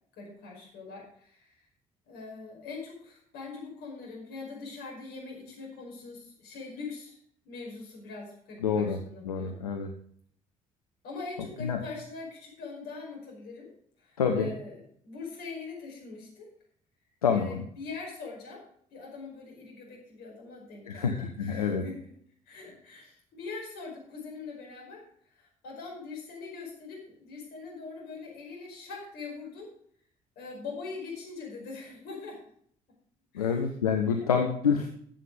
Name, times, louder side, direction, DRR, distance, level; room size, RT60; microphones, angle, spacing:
voice 1, 0.2-1.6 2.1-7.2 7.4-9.6 11.0-13.7 14.0-16.5 17.3-18.6 18.9-22.1 22.4-29.7 30.4-32.4 33.3-33.6 34.1-34.3, left 4 dB, 60° left, -2 dB, 5.4 m, -42 dB
voice 2, 8.6-9.0 9.2-9.9 11.6-11.8 14.2-14.5 17.2-17.6 20.9-21.8 33.3-34.9, left 6 dB, 85° left, 3 dB, 0.9 m, -27 dB
14.0 x 7.6 x 5.2 m, 0.62 s
figure-of-eight pair, 50°, 18 cm